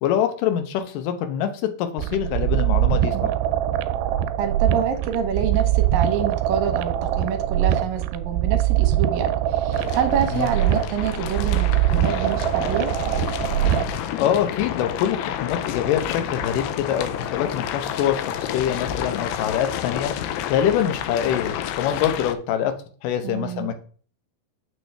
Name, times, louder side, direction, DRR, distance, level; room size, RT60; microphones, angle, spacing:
voice 1, 0.0-3.2 10.3-10.5 14.2-20.1 20.5-22.7 23.0-23.8, left 9 dB, 70° left, 7 dB, 2.2 m, -24 dB
sound 1, 2.0-14.0, right 12 dB, 85° right, 2.6 m, -22 dB
voice 2, 3.0-3.3 4.4-12.9 23.2-23.7, right 7 dB, 70° right, 6 dB, 2.5 m, -27 dB
sound 2, 9.7-22.3, left 10 dB, 90° left, 2.7 m, -30 dB
6.8 x 6.3 x 3.4 m, 0.42 s
omnidirectional pair, 4.6 m